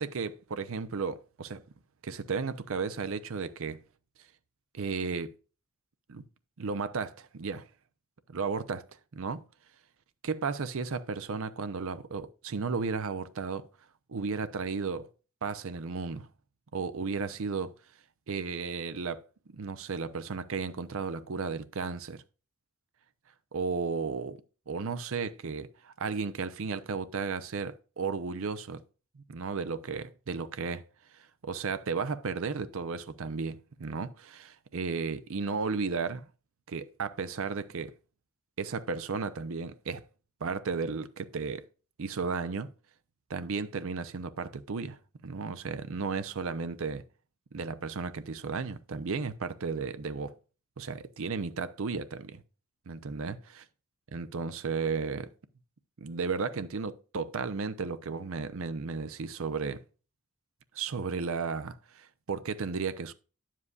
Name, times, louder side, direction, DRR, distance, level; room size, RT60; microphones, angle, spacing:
voice 1, 0.0-1.6 2.0-3.8 4.7-5.3 6.1-6.2 6.6-7.7 8.3-8.9 9.1-9.4 10.2-13.7 14.1-15.1 15.4-16.3 16.7-17.7 18.3-19.2 19.5-22.2 23.5-24.4 24.7-28.8 29.2-30.8 31.1-36.3 36.7-37.9 38.6-40.0 40.4-41.6 42.0-42.7 43.3-47.0 47.5-50.3 50.8-52.4 52.9-53.4 54.1-55.3 56.0-59.8 60.7-63.1, right 4 dB, 60° right, 0.6 m, -34 dB
9.6 x 7.5 x 2.4 m
head